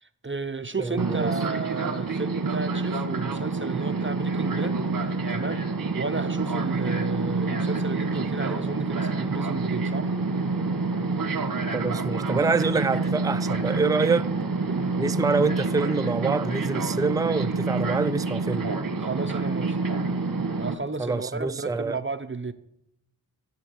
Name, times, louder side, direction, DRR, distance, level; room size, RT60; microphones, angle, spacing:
voice 1, 0.0-4.8 5.0-5.7 5.9-10.1 12.4-12.5 14.6-14.8 19.0-19.8 20.6-22.5, right 4 dB, 30° right, 0.8 m, -33 dB
voice 2, 0.8-1.3 11.7-14.3 15.0-18.7 21.0-22.0, right 4 dB, 10° right, 0.4 m, -26 dB
Fixed-wing aircraft airplane, 1.0-20.7, right 3 dB, 60° right, 1.4 m, -27 dB
12.5 x 7.6 x 8.1 m
wide cardioid pair, 60°, 38 cm